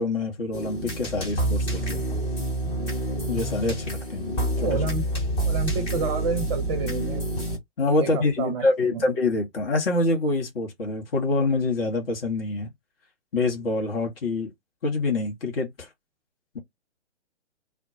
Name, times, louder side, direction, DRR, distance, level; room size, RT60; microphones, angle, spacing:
voice 1, 0.0-2.2 3.3-4.8 7.8-12.7 13.3-14.5 14.8-15.9, left 2 dB, 55° left, 1.0 m, -26 dB
sound 1, 0.5-7.6, right 1 dB, 15° left, 0.6 m, -28 dB
voice 2, 4.6-5.1 5.4-7.2 8.0-9.1, right 4 dB, 30° right, 0.6 m, -29 dB
2.2 x 2.1 x 2.8 m
figure-of-eight pair, 125°, 34 cm